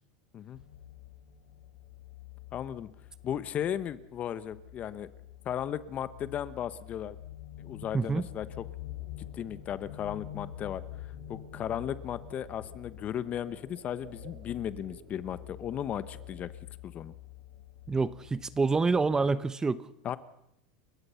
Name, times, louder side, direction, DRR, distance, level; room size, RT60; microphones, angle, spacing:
sound 1, 0.5-19.2, left 12 dB, 80° left, 4.5 m, -47 dB
voice 1, 2.5-2.9 3.2-5.1 5.4-7.2 7.6-8.6 9.2-10.8 11.3-16.5 16.8-17.1 20.0-20.2, left 10 dB, 35° left, 15 dB, 1.1 m, -36 dB
sound 2, 8.1-16.4, right 6 dB, 70° right, 4.3 m, -56 dB
voice 2, 17.9-19.8, right 4 dB, 15° right, 15 dB, 0.8 m, -27 dB
29.5 x 15.5 x 5.8 m, 0.77 s
supercardioid pair, 115°, 4 cm